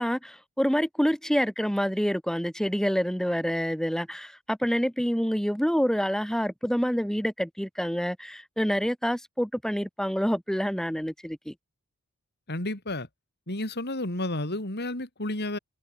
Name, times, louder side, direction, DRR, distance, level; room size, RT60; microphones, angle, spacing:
voice 1, 0.0-11.5, equal, ahead, 4.6 m, -27 dB
voice 2, 12.5-13.1 13.5-15.6, left 1 dB, 50° left, 4.4 m, -31 dB
head